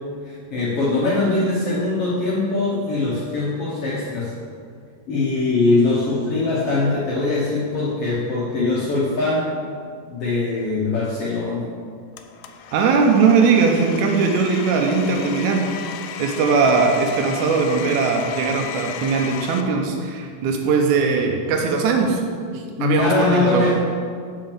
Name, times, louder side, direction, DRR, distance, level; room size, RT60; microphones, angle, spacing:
voice 1, 0.2-4.3 5.1-9.5 10.1-11.7 22.8-23.7, left 3 dB, 65° left, -6 dB, 1.5 m, -22 dB
Domestic sounds home sounds, 12.2-19.6, left 7 dB, 90° left, 2.3 m, -34 dB
voice 2, 12.7-15.7 16.2-22.2 22.5-23.7, right 5 dB, 80° right, 2 dB, 1.7 m, -19 dB
6.0 x 5.7 x 6.9 m, 2.1 s
omnidirectional pair, 3.9 m